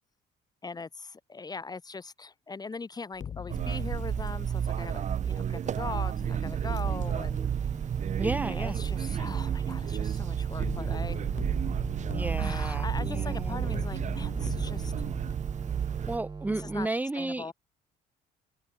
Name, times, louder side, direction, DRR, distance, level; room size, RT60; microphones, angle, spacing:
voice 1, 0.6-7.5 8.4-11.2 12.4-15.1 16.5-16.9 17.2-17.5, left 4 dB, 25° left, 3.9 m, -40 dB
sound 1, 3.1-8.2 10.6-15.3, left 8 dB, 45° left, 6.7 m, -43 dB
sound 2, 3.5-16.2, right 9 dB, 45° right, 1.5 m, -31 dB
sound 3, 6.2-16.9, right 4 dB, 25° right, 5.2 m, -41 dB
voice 2, 8.2-8.8 12.1-13.6 16.0-17.5, right 2 dB, 10° right, 0.8 m, -33 dB
cardioid pair, 110°, 17 cm